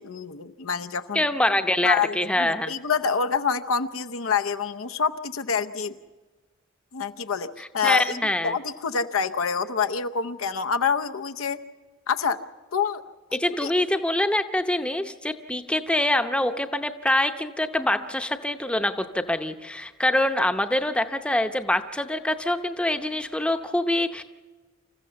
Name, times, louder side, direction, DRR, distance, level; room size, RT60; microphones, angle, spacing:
voice 1, 0.0-1.2 1.8-6.0 6.9-8.2 8.4-11.6 12.1-12.4 12.7-13.0 13.3-13.7, left 6 dB, 90° left, 10 dB, 0.8 m, -27 dB
voice 2, 1.1-2.7 7.6-8.5 13.3-24.2, left 1 dB, 5° left, 8 dB, 0.7 m, -25 dB
27.0 x 14.5 x 6.9 m, 1.3 s
head